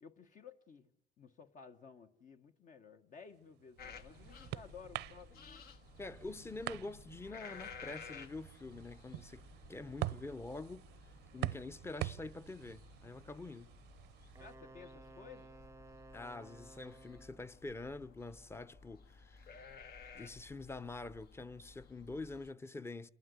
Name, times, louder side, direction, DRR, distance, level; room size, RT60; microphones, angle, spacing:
voice 1, 0.0-0.9 1.2-5.6 14.4-15.5, left 6 dB, 50° left, 1.3 m, -55 dB
sound 1, 3.4-14.5, right 17 dB, 85° right, 0.7 m, -46 dB
sound 2, 3.8-22.5, left 5 dB, 65° left, 1.7 m, -55 dB
voice 2, 6.0-10.9 11.3-13.7 16.1-19.5 20.1-23.1, left 3 dB, 15° left, 0.8 m, -46 dB
Wind instrument woodwind instrument, 14.4-17.5, right 3 dB, 15° right, 0.7 m, -56 dB
28.0 x 12.0 x 8.2 m
cardioid pair, 110°, 17 cm